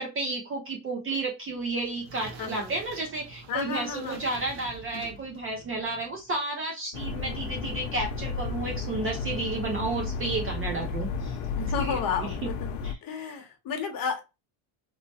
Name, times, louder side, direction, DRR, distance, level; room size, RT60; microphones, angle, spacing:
voice 1, 0.0-11.4 11.8-12.3 12.8-13.0, right 2 dB, 30° right, 0 dB, 0.4 m, -32 dB
sound 1, 1.5-6.4, right 4 dB, 75° right, 0.8 m, -47 dB
voice 2, 2.4-2.7 3.5-4.2 4.9-5.2 11.6-12.5 13.0-14.2, left 6 dB, 45° left, 4 dB, 0.8 m, -32 dB
sound 2, 6.9-12.9, left 4 dB, 85° left, 0.7 m, -33 dB
3.1 x 2.1 x 2.7 m, 0.26 s
cardioid pair, 160°, 50 cm